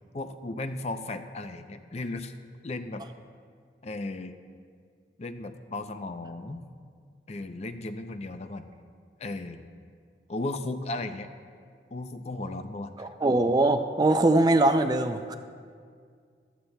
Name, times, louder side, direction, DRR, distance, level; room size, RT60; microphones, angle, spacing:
voice 1, 0.1-2.3 2.6-3.0 3.8-4.4 5.2-6.6 7.3-8.7 9.2-9.6 10.3-11.3 11.9-13.1, left 2 dB, 35° left, 9 dB, 0.5 m, -35 dB
voice 2, 13.0-15.4, right 2 dB, 20° right, 8 dB, 0.4 m, -22 dB
15.0 x 12.5 x 2.3 m, 2.1 s
head